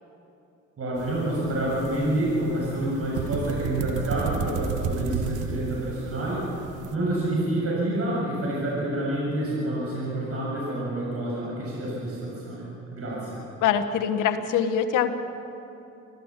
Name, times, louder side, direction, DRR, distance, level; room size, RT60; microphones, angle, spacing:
voice 1, 0.8-6.4 6.9-13.4, right 1 dB, 50° right, -5 dB, 7.2 m, -28 dB
sound 1, 1.0-6.9, right 6 dB, 85° right, 1.4 m, -33 dB
voice 2, 13.6-15.1, left 8 dB, 90° left, 7 dB, 1.5 m, -23 dB
26.0 x 15.5 x 7.5 m, 2.8 s
cardioid pair, 90°, 30 cm